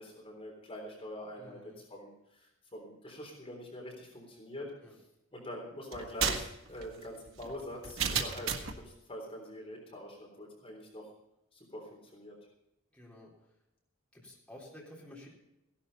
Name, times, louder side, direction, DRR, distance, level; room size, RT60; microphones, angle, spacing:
voice 1, 0.0-4.7 5.3-11.1 11.5-12.4, left 1 dB, 30° left, -1 dB, 3.7 m, -45 dB
voice 2, 1.4-1.8 4.8-4.9 12.9-13.3 14.1-15.3, left 1 dB, 5° left, -5 dB, 4.0 m, -51 dB
sound 1, 5.9-8.8, right 6 dB, 70° right, 1.7 m, -34 dB
16.5 x 12.0 x 4.2 m, 0.86 s
head